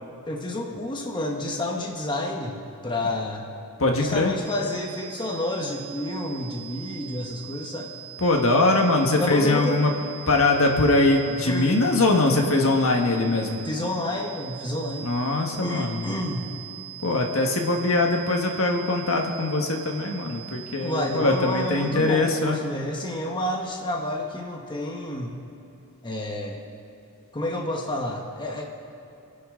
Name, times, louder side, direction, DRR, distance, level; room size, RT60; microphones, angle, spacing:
voice 1, 0.3-2.6 2.8-3.4 4.0-7.9 9.1-9.8 11.4-11.9 13.6-15.1 15.6-16.5 20.8-25.4 26.0-26.6 27.3-28.6, left 1 dB, 20° left, 0 dB, 1.4 m, -29 dB
voice 2, 3.8-4.3 8.2-9.9 10.3-13.6 15.0-16.1 17.0-22.6, left 2 dB, 65° left, 2 dB, 1.6 m, -22 dB
sound 1, 4.4-22.2, right 13 dB, 5° right, 2.7 m, -42 dB
28.0 x 11.0 x 3.8 m, 2.9 s
head